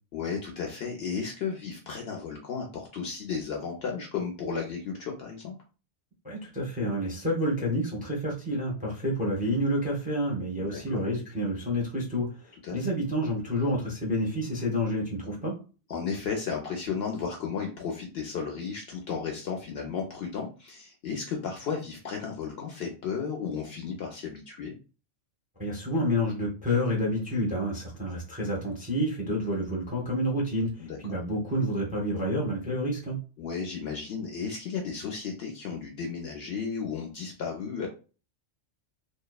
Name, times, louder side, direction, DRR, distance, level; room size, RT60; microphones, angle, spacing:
voice 1, 0.1-5.5 10.6-11.0 12.6-12.8 15.9-24.8 30.8-31.0 33.4-37.9, left 6 dB, 65° left, 1 dB, 0.7 m, -34 dB
voice 2, 6.2-15.5 25.6-33.2, equal, 10° right, -3 dB, 0.5 m, -29 dB
2.7 x 2.0 x 2.2 m, 0.34 s
omnidirectional pair, 1.3 m